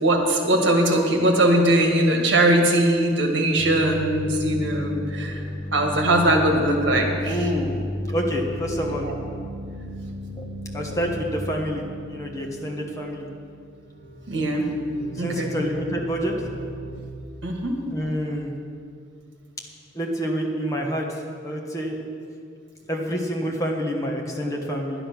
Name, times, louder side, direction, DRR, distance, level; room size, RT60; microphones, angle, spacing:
voice 1, 0.0-5.4 5.7-7.5 9.0-9.1 14.3-14.7 15.2-15.5 17.4-17.8, right 1 dB, 65° right, 2 dB, 1.6 m, -20 dB
sound 1, 3.6-13.5 13.8-17.0, left 1 dB, 80° left, 2.1 m, -34 dB
voice 2, 6.9-7.8 8.1-9.1 10.4-10.5 10.7-13.3 15.1-16.3 17.9-18.5 19.9-22.0 22.9-25.1, equal, 15° left, 0 dB, 1.2 m, -28 dB
11.0 x 9.9 x 6.0 m, 2.3 s
head